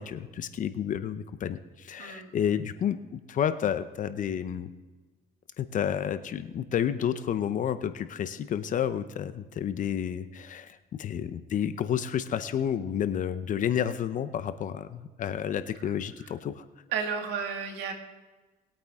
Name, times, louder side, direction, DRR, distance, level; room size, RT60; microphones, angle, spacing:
voice 1, 0.0-4.7 5.6-16.6, left 9 dB, 50° left, 12 dB, 0.7 m, -30 dB
voice 2, 2.0-2.3 16.9-17.9, right 6 dB, 85° right, 4 dB, 2.0 m, -32 dB
20.5 x 8.6 x 3.6 m, 1.2 s
cardioid pair, 110°, 17 cm